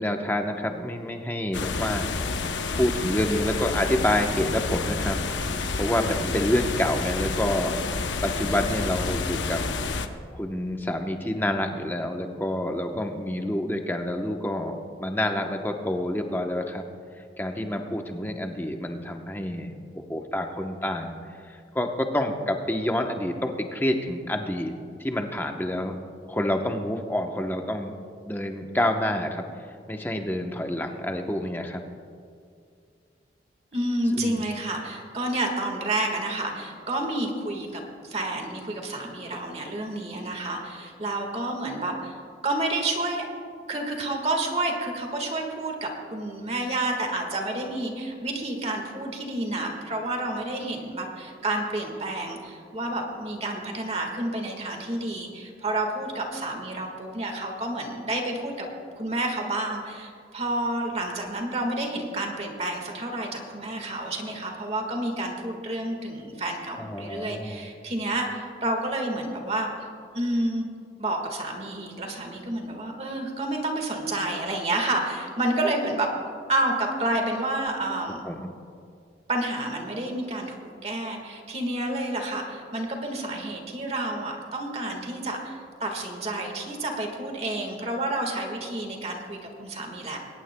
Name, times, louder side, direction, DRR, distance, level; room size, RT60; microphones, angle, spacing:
voice 1, 0.0-2.1 2.4-5.2 5.5-7.8 8.2-9.7 10.3-16.8 17.4-21.1 21.4-24.7 25.0-26.0 26.3-27.9 28.3-29.4 29.9-31.8 34.2-34.4 66.8-67.6 78.2-78.5, left 1 dB, 10° left, 4 dB, 0.9 m, -28 dB
sound 1, 1.5-10.1, left 4 dB, 90° left, 0.8 m, -29 dB
voice 2, 33.7-37.8 38.1-42.2 42.4-43.3 43.7-58.7 59.0-69.7 70.1-70.7 71.0-76.1 76.5-78.3 79.3-90.2, right 1 dB, 35° right, 2 dB, 1.6 m, -29 dB
22.0 x 18.5 x 2.2 m, 2.3 s
head